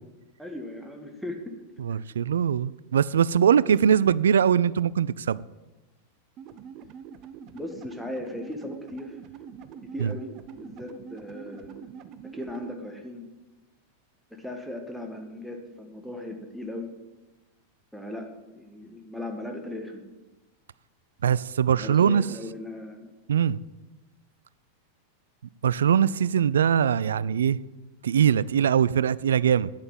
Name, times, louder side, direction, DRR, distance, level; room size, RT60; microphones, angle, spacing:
voice 1, 0.4-1.5 1.9-2.1 3.5-4.1 7.5-9.2 9.8-10.3 10.6-11.8 12.3-13.3 14.3-16.9 17.9-20.0 21.8-23.1, left 1 dB, ahead, 3 dB, 1.7 m, -38 dB
voice 2, 1.8-5.4 10.0-10.1 21.2-22.2 23.3-23.6 25.6-27.6 28.0-29.7, right 8 dB, 65° right, 20 dB, 0.3 m, -22 dB
sound 1, 6.4-12.7, right 7 dB, 35° right, 0.8 m, -44 dB
9.1 x 8.6 x 7.4 m, 1.1 s
figure-of-eight pair, 90°, 0 cm